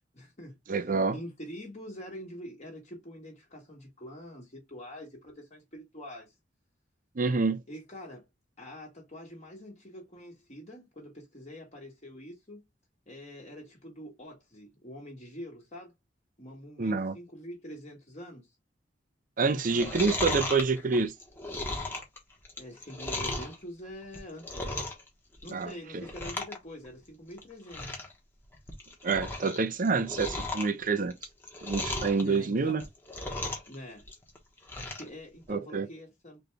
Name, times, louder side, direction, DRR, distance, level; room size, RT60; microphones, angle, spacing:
voice 1, 0.1-6.3 7.7-8.3 8.6-12.6 13.1-15.9 16.4-18.5 19.6-20.4 22.6-24.8 25.4-27.9 32.2-32.8 33.7-34.1 35.0-36.4, equal, 40° left, 1.5 m, -45 dB
voice 2, 0.7-1.2 7.2-7.6 16.8-17.1 19.4-21.1 25.5-25.7 29.0-31.1 31.6-32.8 35.5-35.9, right 4 dB, 45° right, 0.6 m, -27 dB
Chewing mastication, 19.6-23.6 24.0-25.1 25.3-25.7 26.0-26.6 26.8-26.9 27.4-27.5 27.7-28.1 28.5-29.6 29.8-32.2 32.7-33.7 34.0-35.1 35.5-35.6, left 2 dB, 10° left, 1.2 m, -36 dB
4.0 x 3.4 x 3.3 m
head